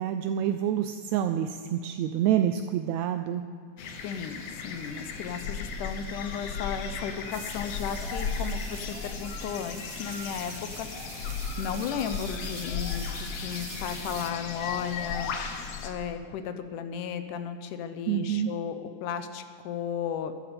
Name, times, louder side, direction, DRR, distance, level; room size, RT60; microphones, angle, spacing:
voice 1, 0.0-3.4 18.1-18.5, right 10 dB, 80° right, 8 dB, 1.6 m, -27 dB
sound 1, 3.8-15.9, left 5 dB, 60° left, 1.8 m, -36 dB
voice 2, 4.0-20.3, left 8 dB, 80° left, 9 dB, 2.3 m, -35 dB
sound 2, 7.3-14.3, right 7 dB, 60° right, 1.8 m, -45 dB
12.5 x 11.0 x 6.7 m, 2.3 s
omnidirectional pair, 3.7 m